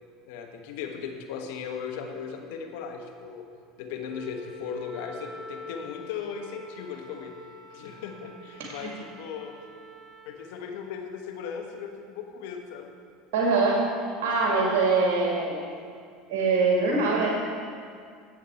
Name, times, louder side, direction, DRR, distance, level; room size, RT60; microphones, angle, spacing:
voice 1, 0.3-3.4 3.8-7.3 7.7-9.5 10.2-12.9, left 7 dB, 70° left, 4 dB, 1.3 m, -37 dB
Wind instrument woodwind instrument, 4.0-10.3, left 1 dB, ahead, 2.6 m, -45 dB
voice 2, 8.6-8.9 13.3-13.8 14.2-15.6 16.3-17.3, right 3 dB, 65° right, -2 dB, 1.9 m, -23 dB
15.0 x 7.4 x 4.3 m, 2.2 s
hypercardioid pair, 80°, 0 cm